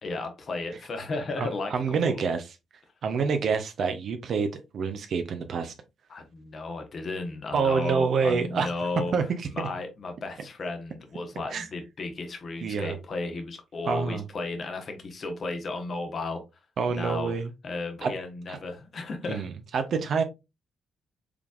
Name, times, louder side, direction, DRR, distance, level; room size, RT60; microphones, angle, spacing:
voice 1, 0.0-1.7 2.0-2.3 6.1-16.4 16.9-17.3 17.6-19.5, left 3 dB, 50° left, 1.0 m, -34 dB
voice 2, 1.4-2.6 3.0-5.7 7.5-8.7 9.1-9.7 11.5-11.7 12.6-13.0 13.9-14.2 16.8-17.5 18.0-18.1 18.5-18.6 19.3-20.2, right 5 dB, 60° right, 0.6 m, -27 dB
4.9 x 3.4 x 2.4 m
hypercardioid pair, 40°, 0 cm